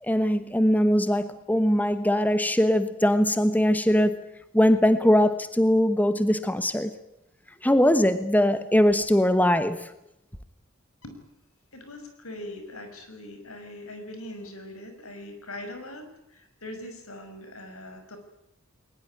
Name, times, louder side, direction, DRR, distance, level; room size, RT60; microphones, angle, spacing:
voice 1, 0.0-4.2 4.5-6.9 7.6-9.9, equal, 10° left, 1.1 m, -21 dB
voice 2, 11.7-18.2, left 1 dB, 80° left, 6.1 m, -41 dB
21.5 x 20.5 x 10.0 m
head